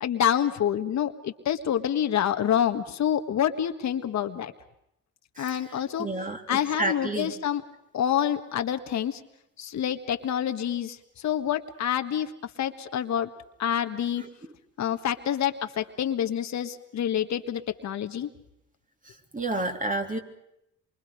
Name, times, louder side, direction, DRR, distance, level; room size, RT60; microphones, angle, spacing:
voice 1, 0.0-4.5 5.4-6.1 6.5-7.6 7.9-9.2 9.6-13.3 13.6-14.2 14.8-18.3, left 9 dB, 65° left, 7 dB, 1.7 m, -27 dB
voice 2, 6.0-7.3 19.3-20.2, right 2 dB, 25° right, 4 dB, 3.3 m, -30 dB
27.0 x 24.5 x 5.2 m, 0.81 s
cardioid pair, 90°, 30 cm